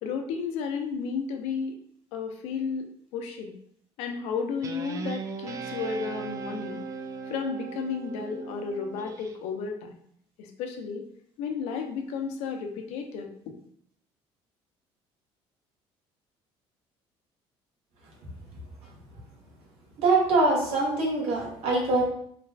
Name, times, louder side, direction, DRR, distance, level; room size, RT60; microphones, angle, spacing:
voice 1, 0.0-1.8 2.1-3.5 4.0-6.8 7.3-10.0 10.4-11.0 11.4-13.5, left 5 dB, 80° left, 4 dB, 0.6 m, -33 dB
Guitar, 4.6-9.4, right 5 dB, 30° right, 0.3 m, -38 dB
voice 2, 20.0-22.0, right 3 dB, 75° right, -3 dB, 1.2 m, -23 dB
3.3 x 2.3 x 3.3 m, 0.66 s
cardioid pair, 125°, 11 cm